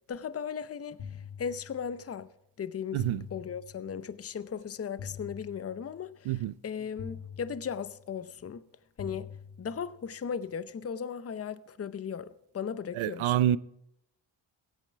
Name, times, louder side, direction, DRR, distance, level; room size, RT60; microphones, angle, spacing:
voice 1, 0.1-2.3 2.6-3.0 3.3-8.6 9.0-9.3 9.6-13.3, left 7 dB, 30° left, 0.7 m, -37 dB
sound 1, 1.0-2.2 3.0-4.2 5.0-6.2 7.0-8.2 9.0-10.2, left 7 dB, 85° left, 2.3 m, -45 dB
voice 2, 2.9-3.3 6.2-6.5 12.9-13.6, right 12 dB, 85° right, 0.6 m, -27 dB
16.0 x 9.2 x 4.6 m
cardioid pair, 75°, 47 cm